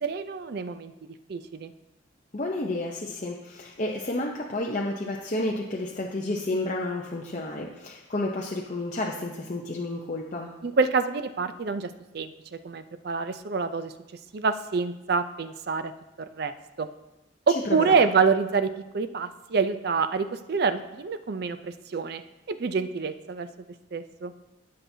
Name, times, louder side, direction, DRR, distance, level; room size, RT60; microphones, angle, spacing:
voice 1, 0.0-0.9 1.3-1.7 10.6-13.9 14.3-15.9 16.2-16.9 17.5-22.2 22.5-23.5 23.9-24.3, right 5 dB, 50° right, 11 dB, 0.4 m, -27 dB
voice 2, 2.3-10.5 17.6-18.0, left 2 dB, 40° left, -2 dB, 0.7 m, -31 dB
17.0 x 5.8 x 2.7 m, 1.0 s
head